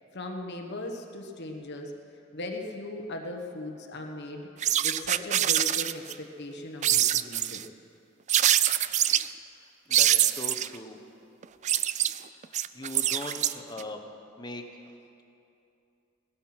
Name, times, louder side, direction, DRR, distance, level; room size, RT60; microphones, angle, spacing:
voice 1, 0.1-1.9 2.3-4.5 4.8-7.6, left 2 dB, 55° left, 2 dB, 1.3 m, -38 dB
sound 1, 4.6-6.1 6.8-7.6 8.3-9.3 9.9-10.8 11.4-13.8, right 11 dB, 35° right, 0.3 m, -24 dB
voice 2, 9.9-11.0 12.3-14.0 14.4-14.7, left 2 dB, 20° left, 4 dB, 1.1 m, -40 dB
18.0 x 13.0 x 6.0 m, 2.7 s
head